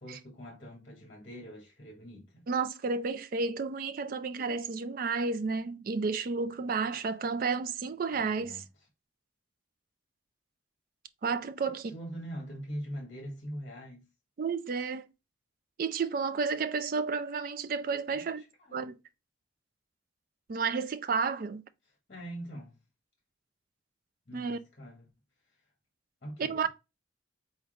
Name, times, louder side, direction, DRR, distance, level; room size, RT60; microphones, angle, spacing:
voice 1, 0.0-2.5 8.1-8.6 11.6-14.1 18.1-18.9 22.1-22.8 24.3-25.0 26.2-26.7, equal, 40° left, 1.2 m, -43 dB
voice 2, 2.5-8.6 11.2-11.9 14.4-15.1 15.8-18.4 18.7-19.0 20.5-21.6 24.3-24.6 26.4-26.7, right 5 dB, 45° right, 0.3 m, -31 dB
4.1 x 3.5 x 2.3 m
head